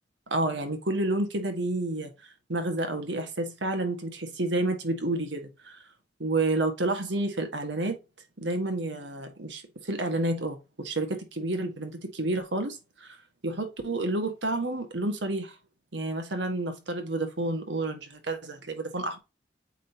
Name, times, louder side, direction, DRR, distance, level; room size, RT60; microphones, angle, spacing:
voice 1, 0.3-2.1 2.5-5.8 6.2-8.0 8.4-13.2 13.4-15.6 15.9-19.2, right 2 dB, 80° right, 1.6 m, -30 dB
8.5 x 3.9 x 2.8 m
head